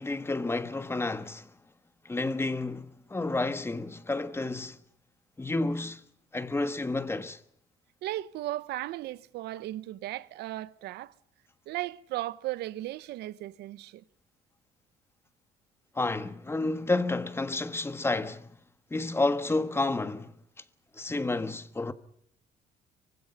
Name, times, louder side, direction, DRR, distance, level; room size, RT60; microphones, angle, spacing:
voice 1, 0.0-1.5 2.0-4.8 5.4-6.0 6.3-7.4 15.9-18.5 18.9-20.3 21.0-21.9, left 2 dB, 15° left, 1.5 m, -30 dB
voice 2, 8.0-11.1 11.7-14.0, right 15 dB, 80° right, 0.9 m, -36 dB
24.5 x 24.5 x 5.5 m
cardioid pair, 110°, 17 cm